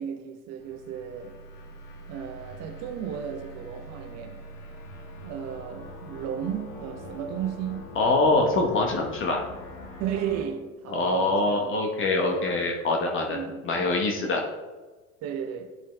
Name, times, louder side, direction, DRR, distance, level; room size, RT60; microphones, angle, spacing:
voice 1, 0.0-1.4 2.1-4.4 5.2-7.8 10.0-11.7 12.2-12.5 13.3-13.7 14.2-14.3 15.2-15.7, right 9 dB, 35° right, 0.8 m, -34 dB
sound 1, 0.6-10.4, left 1 dB, 45° left, 1.5 m, -43 dB
voice 2, 8.0-9.4 10.9-14.4, left 2 dB, 30° left, 1.1 m, -24 dB
10.5 x 7.3 x 2.3 m
figure-of-eight pair, 75°, 43 cm